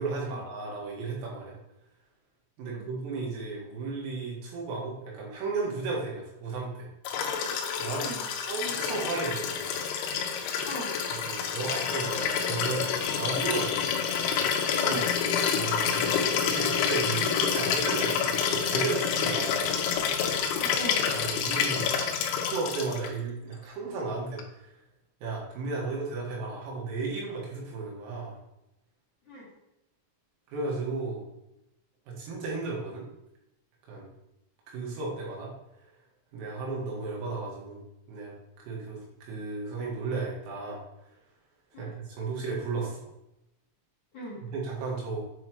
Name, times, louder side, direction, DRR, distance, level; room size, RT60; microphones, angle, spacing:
voice 1, 0.0-1.6 2.6-6.9 7.8-8.1 8.5-9.8 11.2-13.8 14.8-15.0 15.5-19.6 21.1-21.9 22.3-24.7 25.2-28.4 30.5-31.3 32.1-33.1 33.9-34.1 34.7-35.5 36.3-37.8 38.1-40.8 41.8-43.1 44.5-45.2, right 3 dB, 90° right, -3 dB, 4.5 m, -34 dB
Liquid, 7.0-23.1 24.4-24.5, left 7 dB, 80° left, 3.0 m, -28 dB
voice 2, 10.6-11.0 14.8-15.1 20.5-21.0 29.2-29.5 41.7-41.9 44.1-44.4, left 1 dB, 60° left, -9 dB, 2.0 m, -39 dB
8.9 x 4.9 x 3.1 m, 0.88 s
omnidirectional pair, 5.8 m